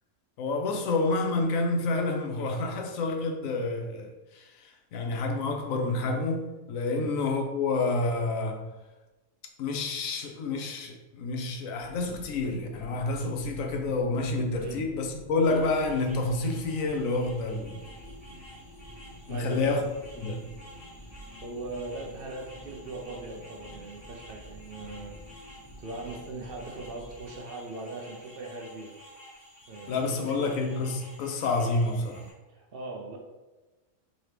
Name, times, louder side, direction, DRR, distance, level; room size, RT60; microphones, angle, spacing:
voice 1, 0.4-8.8 9.6-17.8 19.3-19.8 20.2-20.6 29.9-32.3, left 3 dB, 85° left, 3 dB, 1.0 m, -29 dB
sound 1, 11.7-27.4, equal, 60° left, 1.3 m, -49 dB
sound 2, 15.4-32.3, equal, 15° left, 1.2 m, -51 dB
voice 2, 19.3-19.8 21.4-25.1 25.8-28.9 29.7-30.5 32.5-33.2, right 2 dB, 60° right, -1 dB, 0.6 m, -40 dB
3.9 x 2.9 x 3.3 m, 1.1 s
omnidirectional pair, 1.4 m